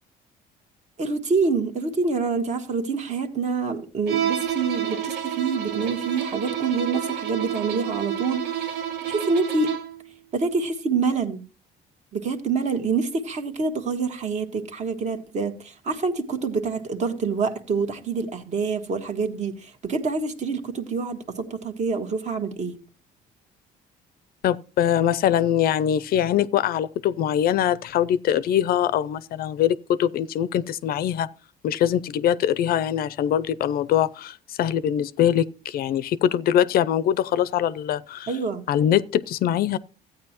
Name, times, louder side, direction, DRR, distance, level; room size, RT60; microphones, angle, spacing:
voice 1, 1.0-8.7 9.1-9.7 10.3-11.4 12.1-22.8 38.3-38.6, right 4 dB, 45° right, 1.4 m, -26 dB
Bowed string instrument, 4.1-10.0, right 10 dB, 70° right, 1.3 m, -29 dB
voice 2, 24.4-31.3 31.6-38.3 38.7-39.8, left 10 dB, 60° left, 0.5 m, -23 dB
14.0 x 9.0 x 2.9 m
cardioid pair, 110°, 17 cm